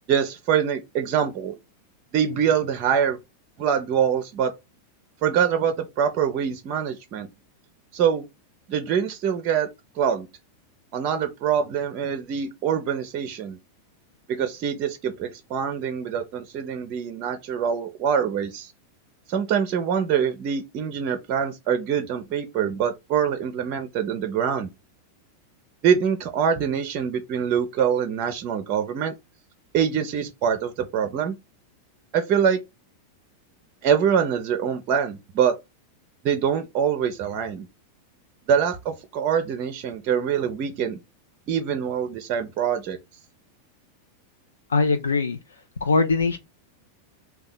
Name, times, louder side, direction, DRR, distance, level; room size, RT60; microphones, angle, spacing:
voice 1, 0.1-1.5 2.1-3.2 3.6-4.5 5.2-7.3 7.9-8.3 8.7-9.7 10.0-10.3 10.9-13.6 14.3-18.7 19.3-24.7 25.8-29.1 29.7-31.4 32.1-32.6 33.8-35.6 36.2-37.7 38.5-41.0 41.5-43.0, right 8 dB, 40° right, 0.4 m, -24 dB
voice 2, 44.7-45.4 45.8-46.4, left 4 dB, 70° left, 0.3 m, -21 dB
2.8 x 2.2 x 3.9 m
figure-of-eight pair, 90°, 0 cm